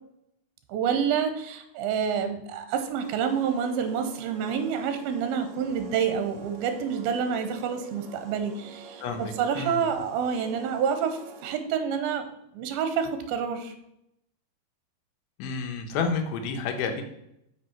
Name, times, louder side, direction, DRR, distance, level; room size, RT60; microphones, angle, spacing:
voice 1, 0.7-12.2 12.5-13.7, right 7 dB, 80° right, 8 dB, 2.6 m, -28 dB
sound 1, 3.0-11.8, right 4 dB, 65° right, 1.8 m, -47 dB
voice 2, 9.0-9.8 15.4-17.0, left 5 dB, 80° left, 6 dB, 2.7 m, -30 dB
8.1 x 5.7 x 4.4 m, 0.80 s
omnidirectional pair, 4.5 m